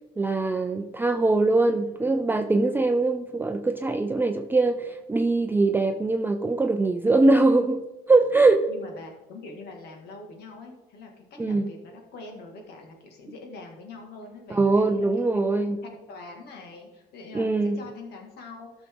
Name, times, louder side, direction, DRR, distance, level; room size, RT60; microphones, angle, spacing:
voice 1, 0.2-8.7 11.4-11.7 14.5-15.8 17.3-17.8, right 3 dB, 10° right, 6 dB, 0.5 m, -22 dB
voice 2, 1.5-2.1 8.7-15.5 15.8-18.9, left 3 dB, 75° left, 2 dB, 2.2 m, -44 dB
13.0 x 6.1 x 3.8 m, 1.0 s
cardioid pair, 110°, 17 cm